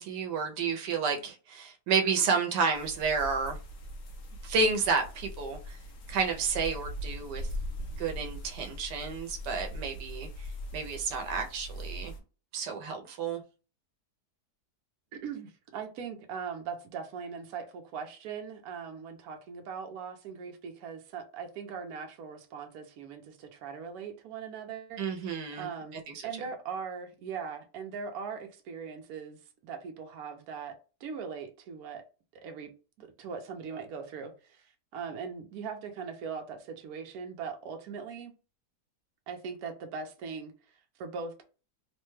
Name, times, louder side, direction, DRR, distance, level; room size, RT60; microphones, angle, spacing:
voice 1, 0.0-3.6 4.4-5.8 6.1-7.5 7.9-12.1 12.5-13.4 25.0-25.7 26.1-26.3, right 5 dB, 90° right, 1.2 m, -31 dB
sound 1, 2.7-12.2, equal, 60° left, 1.0 m, -41 dB
voice 2, 15.1-25.0 25.6-29.4 29.6-30.8 31.0-32.0 32.3-32.7 33.0-38.3 39.3-41.4, right 6 dB, 70° right, 1.1 m, -40 dB
3.3 x 2.2 x 3.1 m
omnidirectional pair, 1.8 m